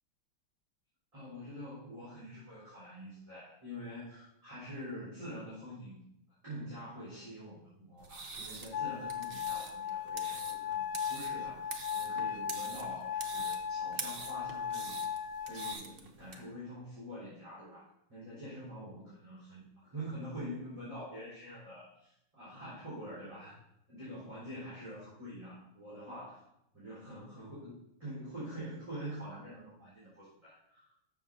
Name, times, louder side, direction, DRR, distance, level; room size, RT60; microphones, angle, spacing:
voice 1, 1.1-6.1 6.4-15.0 15.4-19.6 19.9-23.6 23.9-26.4 26.7-30.9, equal, 15° right, -11 dB, 4.0 m, -46 dB
sound 1, 8.0-16.4, right 4 dB, 90° right, 0.5 m, -45 dB
sound 2, 8.7-15.7, left 8 dB, 80° left, 1.5 m, -37 dB
12.0 x 7.3 x 2.7 m, 0.79 s
omnidirectional pair, 2.3 m